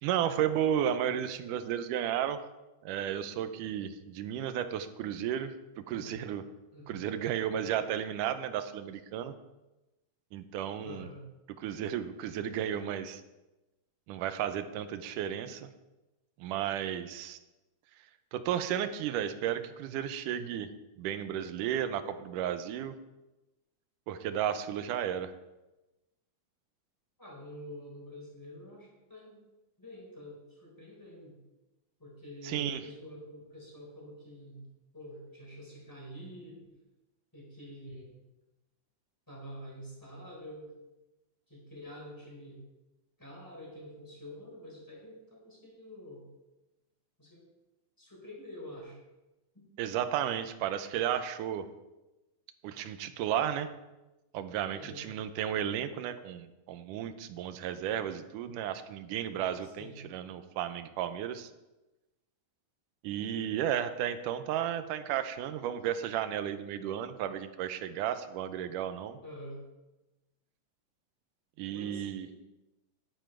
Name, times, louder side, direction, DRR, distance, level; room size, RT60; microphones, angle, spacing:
voice 1, 0.0-2.4 2.8-6.4 6.9-9.3 10.3-11.1 11.6-13.2 14.1-15.7 16.4-17.4 18.3-20.7 21.0-23.0 24.1-25.3 32.4-32.8 49.8-51.7 52.6-53.7 54.3-61.5 63.0-69.2 71.6-72.3, right 10 dB, 85° right, 10 dB, 2.3 m, -33 dB
voice 2, 10.8-11.2 27.2-29.4 29.8-31.4 32.0-34.7 34.9-36.7 37.3-38.1 39.3-40.7 41.5-42.6 43.2-46.3 47.2-47.4 48.0-49.0 49.5-49.7 54.7-55.1 59.6-60.0 69.2-69.6 71.7-72.3, equal, 5° left, -2 dB, 4.0 m, -47 dB
11.5 x 10.0 x 4.5 m, 1.0 s
omnidirectional pair, 3.7 m